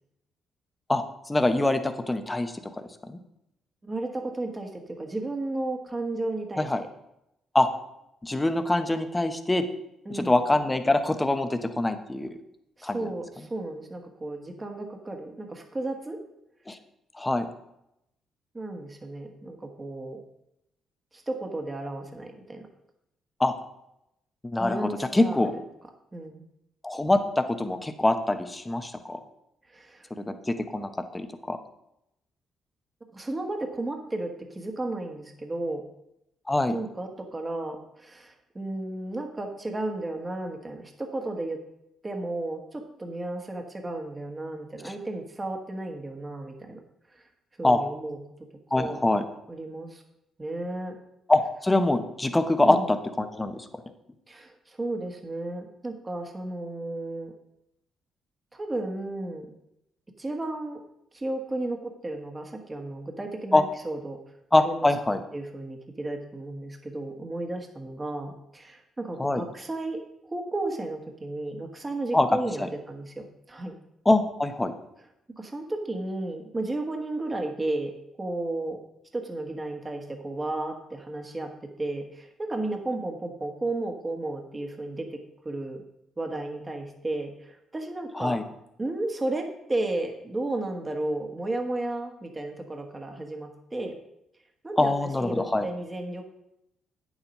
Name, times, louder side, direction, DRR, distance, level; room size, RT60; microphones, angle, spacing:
voice 1, 0.9-2.7 3.0-3.2 6.6-6.8 7.5-7.7 8.2-9.6 10.1-12.4 12.8-13.0 16.7-16.8 17.1-17.5 23.4-23.5 24.4-25.5 26.8-29.2 30.2-31.6 36.5-36.8 47.6-47.8 48.7-49.2 51.3-53.7 63.5-63.6 64.5-65.2 69.2-69.4 72.1-72.3 72.6-72.7 74.0-74.7 88.1-88.4 94.8-95.7, left 2 dB, 15° left, 8 dB, 1.0 m, -24 dB
voice 2, 3.8-6.9 10.0-10.4 12.8-16.2 18.5-20.2 21.1-22.7 24.6-25.5 26.1-26.4 29.7-30.1 33.1-35.8 36.7-41.6 42.0-46.8 47.1-47.3 47.6-48.2 48.7-49.0 49.5-50.0 50.4-51.0 52.6-52.9 54.3-57.3 58.5-59.5 60.2-60.8 61.1-64.2 64.6-64.9 65.3-73.7 75.4-77.9 78.2-78.8 79.1-81.5 81.8-85.2 85.4-85.8 86.2-88.4 88.8-93.9 94.6-94.9 95.2-96.2, right 2 dB, 20° right, 4 dB, 1.5 m, -33 dB
8.7 x 7.3 x 5.4 m, 0.82 s
cardioid pair, 90°, 0 cm